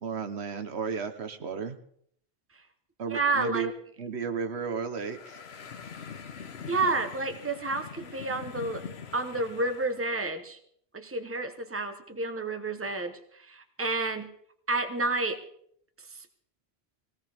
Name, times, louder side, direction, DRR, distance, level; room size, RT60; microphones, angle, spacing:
voice 1, 0.0-1.8 3.0-3.7 4.0-5.4, right 6 dB, 85° right, 8 dB, 1.3 m, -33 dB
voice 2, 3.1-3.7 6.7-8.8 9.1-10.6 10.9-14.3 14.7-15.4, right 3 dB, 15° right, 7 dB, 1.0 m, -30 dB
sound 1, 5.0-10.0, left 6 dB, 75° left, 1.2 m, -43 dB
19.5 x 17.0 x 3.5 m, 0.66 s
omnidirectional pair, 1.1 m